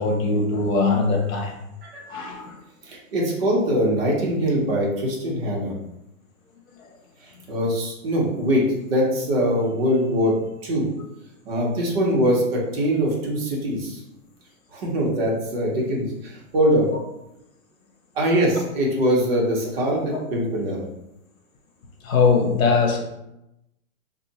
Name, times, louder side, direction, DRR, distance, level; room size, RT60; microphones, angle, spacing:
voice 1, 0.0-1.6 2.1-2.6 6.8-6.9 22.0-23.1, left 4 dB, 75° left, 2 dB, 1.0 m, -21 dB
voice 2, 2.8-5.7 7.2-10.3 10.6-10.9 11.4-14.0 14.7-16.9 18.1-20.8, equal, 45° right, -3 dB, 1.0 m, -22 dB
2.6 x 2.6 x 4.0 m, 0.89 s
hypercardioid pair, 165°, 41 cm